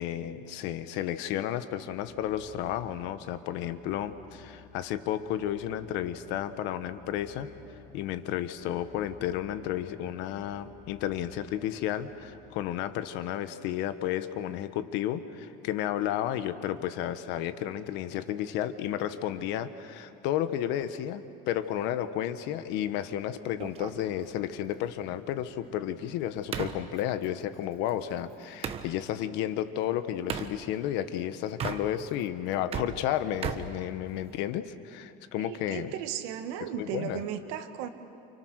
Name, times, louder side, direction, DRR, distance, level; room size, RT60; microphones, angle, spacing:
voice 1, 0.0-7.5 7.9-35.9 36.6-37.2, left 11 dB, 60° left, 11 dB, 1.4 m, -32 dB
sound 1, 1.3-13.2, left 4 dB, 20° left, 4.3 m, -55 dB
sound 2, 23.6-28.9 30.3-30.6 31.5-32.2 32.5-34.5, right 7 dB, 30° right, 1.3 m, -38 dB
voice 2, 35.4-37.9, right 10 dB, 75° right, 7 dB, 2.0 m, -36 dB
29.5 x 29.0 x 6.6 m, 2.7 s
cardioid pair, 165°, 20 cm